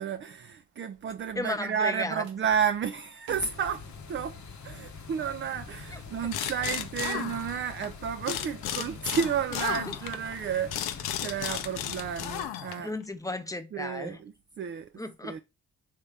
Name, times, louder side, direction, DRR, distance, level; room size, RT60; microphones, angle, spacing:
voice 1, 0.0-4.4 4.6-12.9 13.7-14.9 15.2-15.4, right 7 dB, 30° right, 0.4 m, -32 dB
sound 1, 0.7-14.0 14.4-14.7, right 6 dB, 75° right, 0.9 m, -55 dB
voice 2, 1.4-2.2 5.9-6.0 9.9-10.0 12.8-14.2 15.0-15.4, left 2 dB, 10° left, 0.7 m, -34 dB
sound 2, 3.3-12.4, left 5 dB, 45° left, 0.8 m, -45 dB
sound 3, 6.3-7.9 8.3-13.0, left 11 dB, 75° left, 0.6 m, -34 dB
3.5 x 2.8 x 3.3 m
hypercardioid pair, 45°, 38 cm